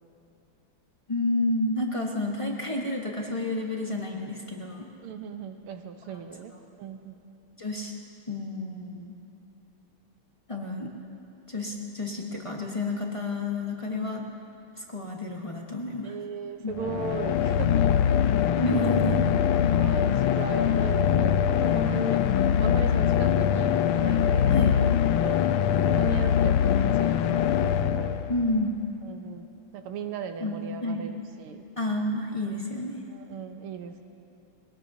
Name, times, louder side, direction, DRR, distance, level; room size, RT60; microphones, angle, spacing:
voice 1, 1.1-4.9 7.6-8.0 8.3-9.1 10.5-10.9 11.5-14.2 14.8-16.1 16.6-16.7 18.5-19.1 24.5-24.8 28.3-28.8 30.4-30.5 30.8-31.1 31.8-33.1, left 2 dB, 20° left, -1 dB, 0.8 m, -30 dB
voice 2, 5.0-7.2 16.0-17.9 18.7-19.0 19.6-22.3 22.6-24.9 25.2-25.5 25.9-27.4 27.8-28.2 29.0-31.7 33.1-34.0, right 7 dB, 75° right, 6 dB, 1.7 m, -37 dB
sound 1, 16.7-28.6, left 9 dB, 90° left, 1.5 m, -23 dB
22.0 x 18.5 x 2.8 m, 2.8 s
omnidirectional pair, 2.4 m